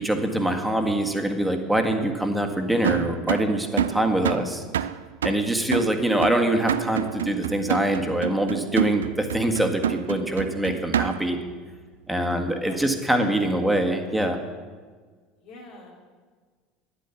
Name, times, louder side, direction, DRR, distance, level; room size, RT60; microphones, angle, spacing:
voice 1, 0.0-4.6 5.2-11.4 12.1-14.4, right 1 dB, 5° right, 4 dB, 1.8 m, -24 dB
sound 1, 2.8-11.4, right 9 dB, 75° right, 0.3 m, -28 dB
voice 2, 12.1-12.8 15.4-16.0, left 2 dB, 60° left, -2 dB, 3.3 m, -47 dB
10.5 x 10.0 x 7.2 m, 1.5 s
figure-of-eight pair, 65°, 0 cm